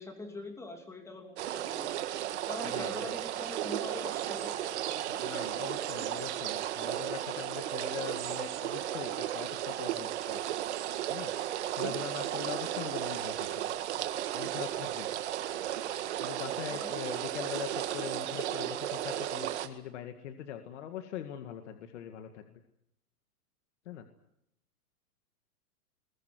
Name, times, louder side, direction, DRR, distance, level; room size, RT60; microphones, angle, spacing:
voice 1, 0.0-1.9 2.5-5.5 16.7-16.9, left 2 dB, 5° left, 4 dB, 2.7 m, -44 dB
sound 1, 1.4-19.7, right 12 dB, 45° right, 1.9 m, -34 dB
voice 2, 2.7-3.1 5.2-10.4 11.1-11.3 11.7-13.7 14.3-15.1 16.2-22.4 23.9-24.0, left 9 dB, 50° left, 6 dB, 2.0 m, -42 dB
21.5 x 19.5 x 9.4 m, 0.78 s
hypercardioid pair, 165°, 45 cm